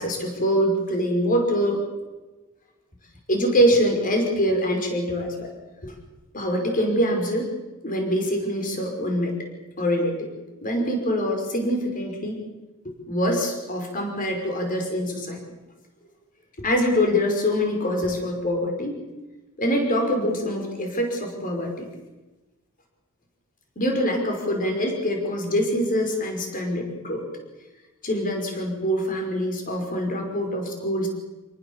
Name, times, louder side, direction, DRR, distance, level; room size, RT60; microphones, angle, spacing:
voice 1, 0.0-1.8 3.3-5.5 5.8-5.9 6.3-7.5 7.8-9.3 9.8-10.3 10.6-12.4 12.8-15.4 16.6-19.0 19.6-21.9 23.8-27.3 28.0-31.1, equal, 40° left, 2 dB, 5.5 m, -24 dB
29.0 x 19.0 x 7.3 m, 1.1 s
head